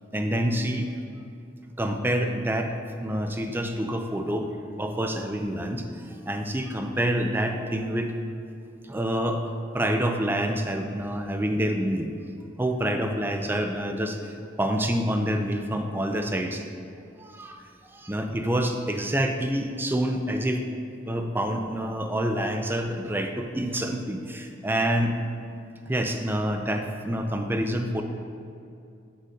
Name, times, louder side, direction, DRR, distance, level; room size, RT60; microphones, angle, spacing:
voice 1, 0.1-0.9 1.8-2.7 3.0-4.5 4.8-8.1 8.8-9.4 9.7-12.1 12.6-14.3 14.6-16.6 17.2-20.7 21.1-25.2 25.9-28.0, right 1 dB, 10° right, 5 dB, 0.5 m, -27 dB
12.5 x 6.3 x 2.8 m, 2.6 s
head